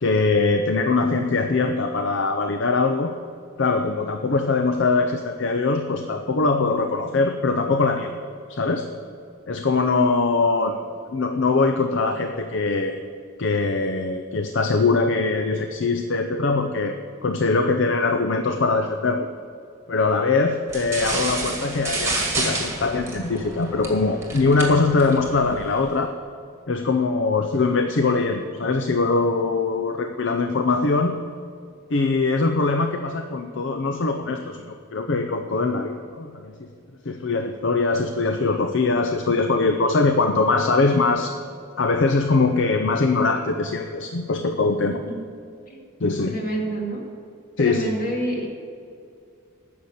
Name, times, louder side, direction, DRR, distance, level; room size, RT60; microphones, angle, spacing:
voice 1, 0.0-3.1 3.6-8.2 8.5-8.9 9.5-10.8 11.1-12.9 13.4-19.3 19.9-26.1 26.7-31.2 31.9-36.7 37.0-41.3 41.8-45.0 46.0-46.4 47.6-48.0, left 3 dB, 60° left, 6 dB, 0.6 m, -22 dB
sound 1, 20.7-26.0, right 2 dB, 15° right, 1.9 m, -30 dB
voice 2, 46.3-47.0 47.6-48.5, right 1 dB, 40° left, -1 dB, 2.2 m, -27 dB
9.7 x 6.8 x 8.5 m, 2.4 s
head